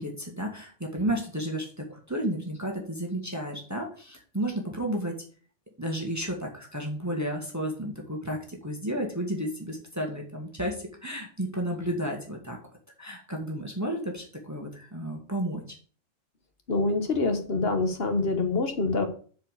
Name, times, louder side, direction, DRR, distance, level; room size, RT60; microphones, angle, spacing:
voice 1, 0.0-5.1 5.8-12.6 13.0-15.6, right 1 dB, 15° right, 0 dB, 1.7 m, -32 dB
voice 2, 16.7-19.1, left 3 dB, 50° left, 6 dB, 1.6 m, -26 dB
7.6 x 4.9 x 6.4 m, 0.42 s
omnidirectional pair, 1.3 m